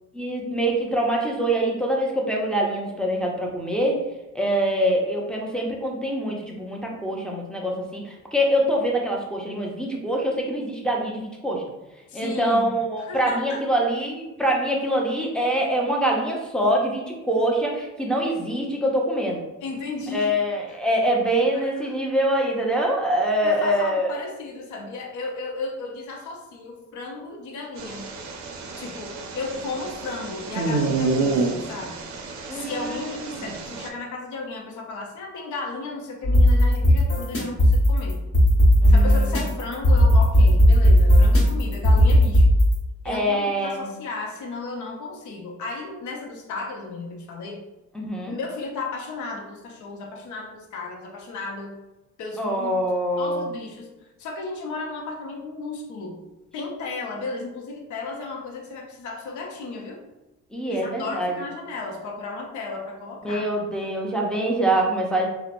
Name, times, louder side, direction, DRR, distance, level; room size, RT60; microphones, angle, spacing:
voice 1, 0.1-4.0 4.3-11.6 12.1-19.4 20.1-24.1 32.5-33.5 38.8-39.4 43.0-43.9 47.9-48.3 52.4-53.5 60.5-61.3 63.2-65.3, right 1 dB, 5° left, -2 dB, 0.5 m, -24 dB
voice 2, 12.1-13.6 19.6-20.3 20.7-20.8 21.5-21.9 23.4-28.1 28.8-32.1 32.5-38.2 38.9-42.5 43.0-47.6 48.3-51.8 52.2-52.7 53.2-56.2 56.5-60.0 60.7-63.5, left 3 dB, 75° left, 1 dB, 0.6 m, -34 dB
sound 1, 27.8-33.9, right 3 dB, 65° right, 0.5 m, -29 dB
sound 2, 36.2-42.8, equal, 50° left, 1.1 m, -16 dB
2.8 x 2.1 x 2.5 m, 1.0 s
cardioid pair, 90°, 30 cm